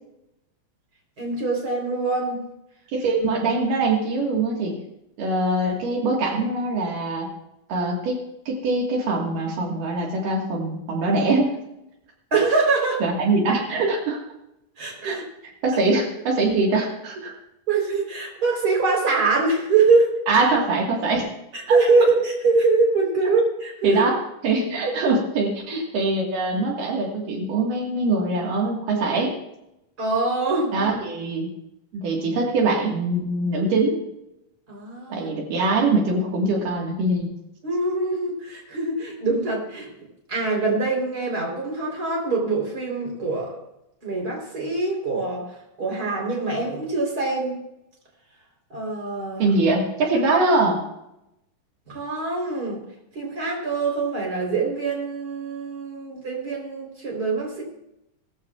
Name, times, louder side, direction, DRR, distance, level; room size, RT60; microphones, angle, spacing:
voice 1, 1.2-2.4 12.3-13.0 14.8-15.2 17.7-20.1 21.5-24.0 30.0-30.9 34.7-35.3 37.6-39.9 40.3-43.5 44.0-45.5 45.8-47.5 48.7-49.5 51.9-52.8 53.1-57.6, right 3 dB, 30° right, -1 dB, 3.9 m, -23 dB
voice 2, 2.9-4.8 5.2-7.3 7.7-11.6 13.0-14.2 15.0-15.2 15.6-17.3 20.3-21.3 21.7-21.8 23.3-23.4 23.8-24.2 24.4-29.3 30.7-31.5 31.9-34.0 35.1-37.3 49.4-50.8, right 3 dB, 80° right, -1 dB, 3.3 m, -23 dB
19.0 x 14.0 x 2.4 m, 0.86 s
omnidirectional pair, 3.8 m